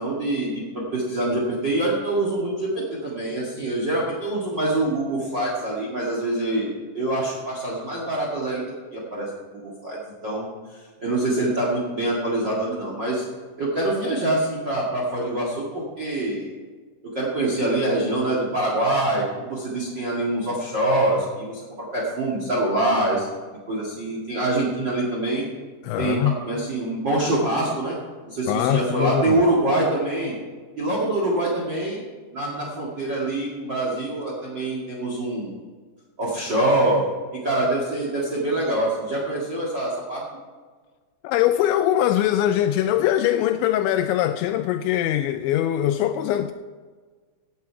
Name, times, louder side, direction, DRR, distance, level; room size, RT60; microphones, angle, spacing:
voice 1, 0.0-8.6 8.9-13.2 13.6-16.5 17.1-23.3 23.7-25.5 26.0-28.0 28.3-30.3 30.8-32.0 32.3-35.5 36.2-37.0 37.3-40.2, right 1 dB, 75° right, 1.0 m, -25 dB
voice 2, 25.8-26.3 28.5-29.4 41.2-46.5, left 12 dB, 85° left, 2.6 m, -22 dB
17.0 x 8.6 x 4.7 m
omnidirectional pair, 5.7 m